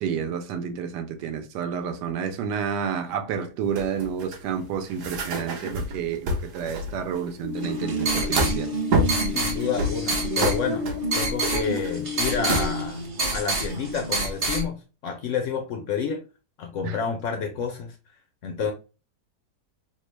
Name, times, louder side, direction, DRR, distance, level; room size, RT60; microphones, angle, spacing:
voice 1, 0.0-8.7 16.8-17.0, right 7 dB, 80° right, 1.2 m, -30 dB
sound 1, 3.8-7.3 7.6-8.7 8.9-9.4 9.8-12.8, right 1 dB, 60° right, 0.9 m, -28 dB
sound 2, 7.4-12.9, left 8 dB, 90° left, 1.3 m, -34 dB
sound 3, 7.6-14.6, right 3 dB, 30° right, 0.7 m, -28 dB
voice 2, 9.3-10.8 11.1-13.0 13.3-16.2 16.6-18.0 18.4-18.7, left 6 dB, 75° left, 0.7 m, -29 dB
3.7 x 2.2 x 3.1 m
omnidirectional pair, 1.8 m